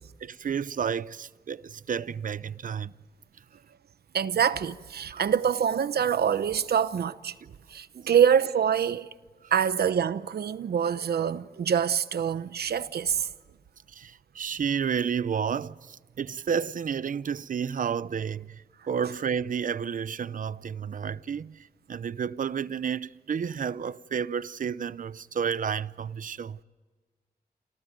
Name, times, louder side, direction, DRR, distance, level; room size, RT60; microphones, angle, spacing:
voice 1, 0.0-2.9 5.1-5.2 7.9-8.1 13.9-26.6, right 7 dB, 55° right, 0.6 m, -31 dB
voice 2, 4.1-7.3 7.7-9.1 9.5-13.3 18.8-18.9, right 8 dB, 85° right, 0.9 m, -25 dB
28.5 x 28.0 x 5.3 m
wide cardioid pair, 130°, 16 cm